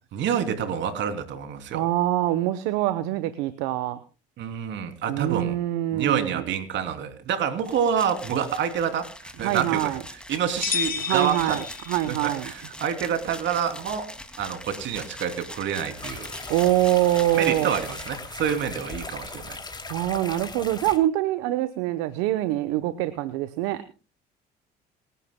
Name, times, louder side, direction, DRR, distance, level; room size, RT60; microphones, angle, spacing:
voice 1, 0.1-1.8 4.4-5.6 5.9-9.9 10.3-11.6 12.1-14.1 14.4-16.3 17.3-19.6, right 8 dB, 65° right, 7 dB, 3.0 m, -27 dB
voice 2, 1.7-4.0 5.1-6.4 9.4-10.0 11.0-12.5 16.5-17.7 19.9-23.9, right 15 dB, 80° right, 12 dB, 0.9 m, -24 dB
sound 1, 7.6-18.8, left 1 dB, 5° left, 2.4 m, -42 dB
sound 2, 10.6-12.4, left 6 dB, 45° left, 3.2 m, -31 dB
sound 3, 16.0-21.0, left 3 dB, 20° left, 2.8 m, -38 dB
27.5 x 11.5 x 2.2 m, 0.32 s
supercardioid pair, 70°, 21 cm